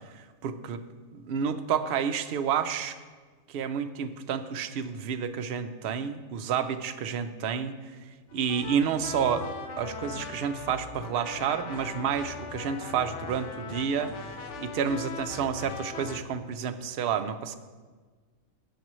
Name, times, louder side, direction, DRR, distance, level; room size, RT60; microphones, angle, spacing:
voice 1, 0.1-0.8 1.1-3.0 3.5-7.7 8.3-9.5 9.8-17.6, right 7 dB, 60° right, 8 dB, 0.7 m, -30 dB
sound 1, 8.3-16.2, left 5 dB, 65° left, 1.1 m, -40 dB
17.0 x 7.3 x 3.1 m, 1.4 s
omnidirectional pair, 1.3 m